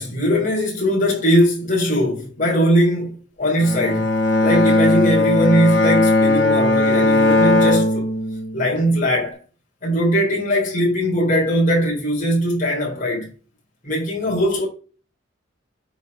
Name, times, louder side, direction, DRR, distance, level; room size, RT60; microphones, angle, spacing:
voice 1, 0.0-4.1 4.4-8.1 8.5-9.4 9.8-13.3 13.8-14.7, equal, 45° left, 3.9 m, -20 dB
Bowed string instrument, 3.6-8.8, left 2 dB, 65° left, 2.2 m, -17 dB
9.2 x 4.4 x 5.4 m
head